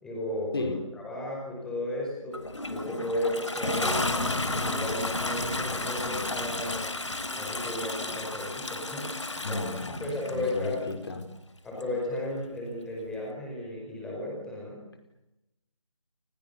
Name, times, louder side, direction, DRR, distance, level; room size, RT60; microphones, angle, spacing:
voice 1, 0.0-2.4 2.7-6.9 7.3-9.6 10.0-10.9 11.6-14.8, left 1 dB, 5° left, -2 dB, 5.1 m, -34 dB
voice 2, 0.5-0.9 9.4-11.2, left 2 dB, 45° left, 6 dB, 5.0 m, -33 dB
Toilet flush, 2.3-10.7 11.8-11.9, left 2 dB, 60° left, 4.0 m, -32 dB
29.0 x 29.0 x 7.0 m, 0.90 s
figure-of-eight pair, 160°, 17 cm